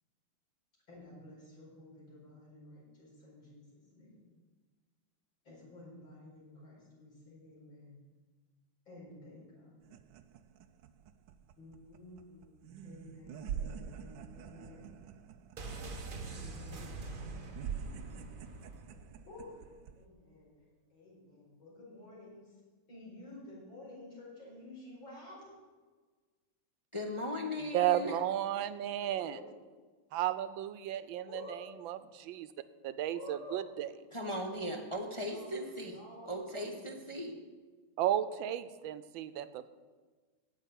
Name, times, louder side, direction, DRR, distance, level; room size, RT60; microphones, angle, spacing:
voice 1, 0.9-4.2 5.4-8.1 8.9-9.7 11.6-12.6 12.8-14.9 16.3-17.6 19.3-19.6 20.0-20.6 20.9-22.6 22.9-25.6 29.1-29.4 31.3-31.6 33.1-33.6 34.2-34.4 35.2-37.0 38.4-38.5, left 1 dB, 75° left, -6 dB, 5.6 m, -52 dB
sound 1, 9.8-20.0, right 8 dB, 75° right, 1.2 m, -46 dB
sound 2, 15.6-19.3 19.6-19.7, right 3 dB, 35° right, 0.9 m, -44 dB
voice 2, 26.9-28.1 34.1-36.0 36.3-37.4, equal, 25° left, 1 dB, 0.7 m, -38 dB
voice 3, 27.7-29.4 30.1-32.5 32.8-33.9 38.0-39.7, right 12 dB, 90° right, 13 dB, 1.4 m, -34 dB
9.0 x 7.6 x 9.2 m, 1.4 s
omnidirectional pair, 2.1 m